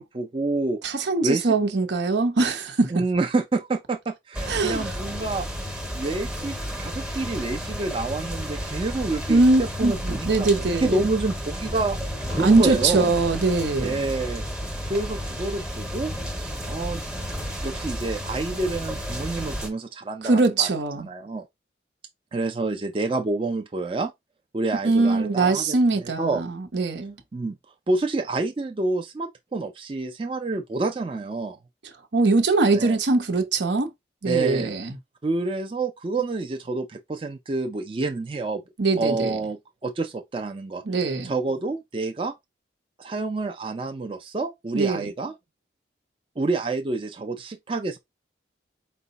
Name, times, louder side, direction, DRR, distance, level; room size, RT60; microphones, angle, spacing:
voice 1, 0.0-0.8 1.2-1.6 2.9-12.0 12.3-13.1 13.8-14.4 14.9-17.0 17.6-20.7 21.0-21.5 22.3-24.1 24.5-26.4 27.3-27.6 27.9-31.6 32.7-33.0 34.2-34.7 35.2-38.6 39.0-40.8 41.2-42.3 43.0-45.3 46.4-48.0, right 3 dB, 30° right, 0.4 m, -28 dB
voice 2, 0.8-3.0 4.5-4.9 9.3-10.9 12.4-14.0 20.2-21.1 24.8-27.2 32.1-33.9 34.2-34.9 38.8-39.4 40.9-41.3 44.7-45.1, right 3 dB, 75° right, 0.8 m, -22 dB
sound 1, 4.3-19.7, equal, 5° right, 0.8 m, -32 dB
4.7 x 2.2 x 3.9 m
head